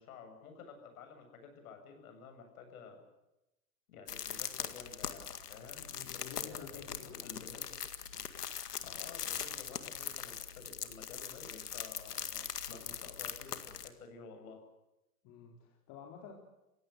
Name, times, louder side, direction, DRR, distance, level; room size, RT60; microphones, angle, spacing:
voice 1, 0.0-3.0 3.9-7.8 8.8-14.6, left 5 dB, 65° left, 6 dB, 7.7 m, -52 dB
sound 1, 4.1-13.9, left 8 dB, 85° left, 2.1 m, -41 dB
voice 2, 5.9-7.4 15.2-16.3, left 7 dB, 45° left, 0 dB, 4.2 m, -50 dB
28.5 x 16.5 x 8.1 m, 0.92 s
hypercardioid pair, 110°, 46 cm